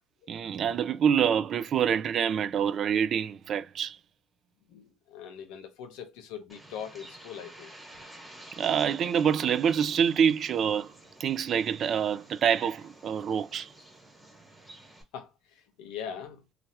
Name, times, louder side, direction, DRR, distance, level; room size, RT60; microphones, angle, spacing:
voice 1, 0.3-4.0 8.6-10.9 11.2-13.7, right 8 dB, 50° right, 0.4 m, -26 dB
voice 2, 4.7-7.7 15.1-16.4, left 8 dB, 90° left, 0.8 m, -41 dB
Bird, 6.5-15.0, right 1 dB, 5° right, 1.3 m, -51 dB
3.2 x 2.3 x 2.7 m
cardioid pair, 120°, 0 cm